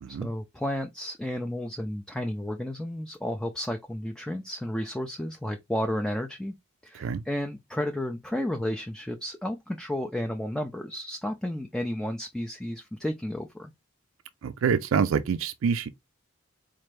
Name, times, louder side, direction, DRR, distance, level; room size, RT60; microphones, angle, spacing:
voice 1, 0.1-6.5 6.8-13.7, left 1 dB, 5° left, 0.3 m, -32 dB
voice 2, 14.4-15.9, right 6 dB, 75° right, 0.4 m, -26 dB
4.3 x 2.5 x 3.1 m
head